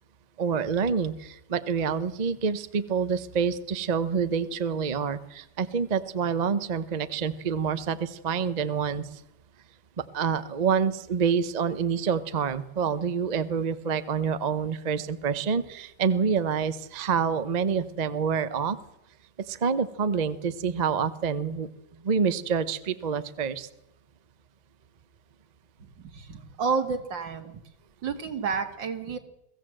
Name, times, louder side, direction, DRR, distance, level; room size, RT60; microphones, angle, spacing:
voice 1, 0.4-9.2 10.0-18.8 19.5-21.7 22.0-23.7, right 6 dB, 35° right, 12 dB, 0.6 m, -27 dB
voice 2, 25.8-27.6 28.0-29.2, right 5 dB, 80° right, 7 dB, 2.6 m, -30 dB
22.5 x 15.5 x 7.7 m, 0.86 s
omnidirectional pair, 2.0 m